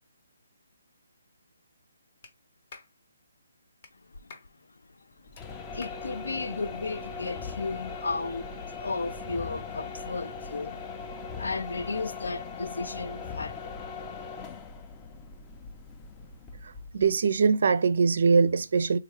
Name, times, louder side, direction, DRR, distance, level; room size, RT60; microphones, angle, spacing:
Clapping, 2.2-2.3 2.7-2.9 3.8-3.9 4.3-4.5 5.3-5.4 5.8-6.0, left 4 dB, 45° left, 0.8 m, -47 dB
sound 1, 5.3-17.1, left 5 dB, 20° left, 0.4 m, -40 dB
voice 1, 5.6-10.9 11.2-13.6, left 3 dB, 80° left, 0.3 m, -34 dB
voice 2, 16.9-19.0, right 5 dB, 60° right, 0.4 m, -22 dB
3.5 x 2.3 x 3.1 m
hypercardioid pair, 155°, 0 cm